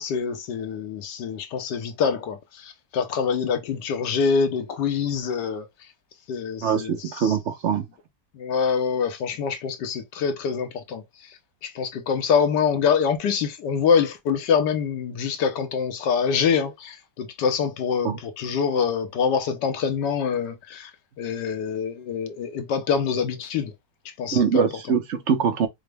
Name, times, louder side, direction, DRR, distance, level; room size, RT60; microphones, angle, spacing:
voice 1, 0.0-5.7 6.3-7.0 7.2-7.3 8.4-11.0 11.6-20.9 21.2-23.7 24.2-24.7, left 6 dB, 75° left, 1.3 m, -25 dB
voice 2, 6.6-7.9 18.0-18.2 24.3-25.7, right 7 dB, 55° right, 0.9 m, -23 dB
5.0 x 2.1 x 3.3 m
omnidirectional pair, 1.9 m